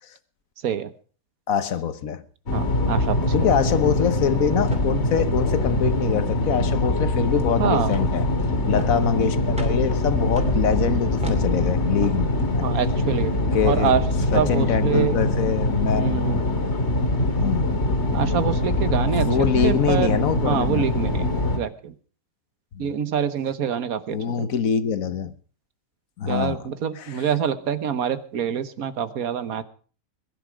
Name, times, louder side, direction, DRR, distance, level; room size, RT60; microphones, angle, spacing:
voice 1, 1.5-2.2 3.3-8.3 8.7-12.7 13.5-14.0 14.3-16.2 17.3-17.7 19.2-20.9 22.7-22.9 24.1-25.3 26.2-26.7 26.9-27.3, left 7 dB, 75° left, 1.4 m, -24 dB
sound 1, 2.5-21.6, left 1 dB, 50° left, 2.6 m, -23 dB
voice 2, 2.5-3.5 7.6-8.0 12.6-13.3 13.6-14.0 14.3-15.2 15.9-16.4 18.1-19.3 19.6-20.1 20.4-21.3 21.6-21.9 22.8-24.5 26.2-29.6, right 8 dB, 85° right, 1.5 m, -25 dB
sound 2, 4.6-15.8, equal, 5° right, 2.7 m, -37 dB
21.0 x 11.0 x 5.0 m
omnidirectional pair, 1.5 m